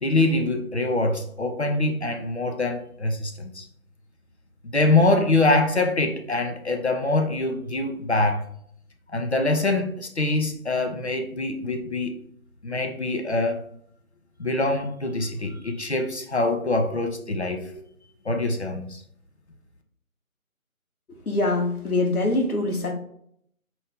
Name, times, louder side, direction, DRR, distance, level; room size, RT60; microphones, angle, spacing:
voice 1, 0.0-3.6 4.6-8.4 9.1-12.1 12.6-13.6 14.4-17.8 18.2-19.0, left 2 dB, 50° left, 4 dB, 0.6 m, -24 dB
voice 2, 21.3-22.9, left 2 dB, 85° left, 2 dB, 1.2 m, -23 dB
4.4 x 2.6 x 3.4 m, 0.68 s
figure-of-eight pair, 165°, 43 cm